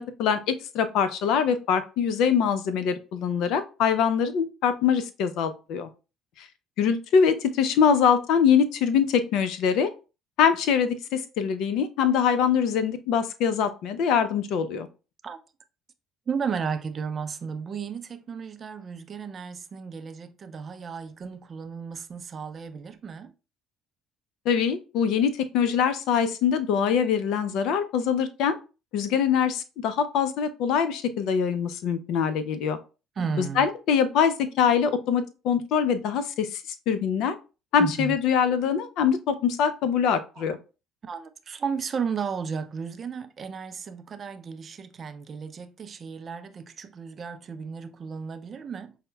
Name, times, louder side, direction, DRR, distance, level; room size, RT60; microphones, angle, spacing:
voice 1, 0.0-5.9 6.4-6.5 6.8-9.9 10.4-14.9 24.5-28.5 28.9-32.8 33.4-37.3 37.7-40.6, left 7 dB, 70° left, 0.4 m, -23 dB
voice 2, 16.3-23.3 33.2-33.7 37.8-38.2 40.4-40.5 41.0-49.0, right 6 dB, 45° right, 0.4 m, -34 dB
5.4 x 2.0 x 2.2 m
hypercardioid pair, 70°, 0 cm